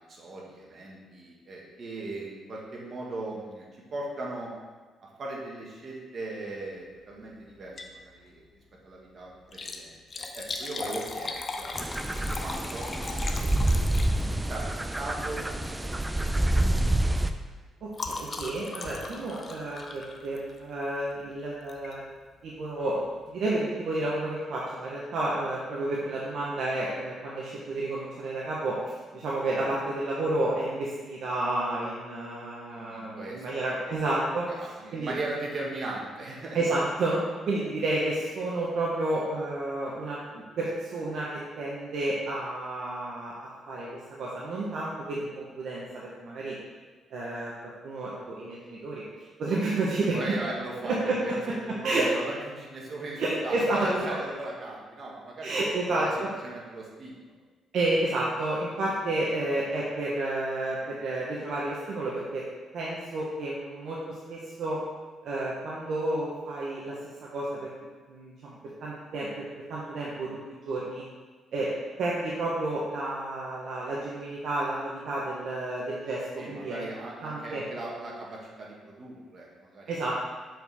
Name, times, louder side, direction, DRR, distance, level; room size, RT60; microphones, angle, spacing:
voice 1, 0.1-4.5 5.2-8.4 8.8-12.1 12.4-15.4 15.8-16.2 32.7-33.4 34.5-36.6 50.0-55.5 55.8-56.1 56.4-57.2 76.4-79.9, right 2 dB, 50° right, -3 dB, 1.7 m, -38 dB
Liquid, 7.6-8.0 8.4-8.5 9.4-14.5 15.5-15.8 16.1-16.4 16.7-20.7 21.7-21.9 22.5-22.6 22.8-22.9, left 3 dB, 35° left, 0.6 m, -38 dB
sound 1, 11.7-17.3, right 1 dB, 10° right, 0.4 m, -27 dB
voice 2, 17.8-22.0 22.4-23.0 23.3-35.1 36.5-43.4 43.7-46.6 47.1-49.0 49.4-50.2 50.8-51.5 51.8-52.1 53.2-53.9 55.4-56.3 57.7-62.4 62.7-64.8 65.2-67.7 68.1-70.4 70.6-71.0 71.5-71.7 72.0-76.9 77.2-77.6 79.9-80.2, right 2 dB, 70° right, -5 dB, 1.0 m, -31 dB
7.0 x 4.5 x 3.5 m, 1.3 s
cardioid pair, 90°, 0 cm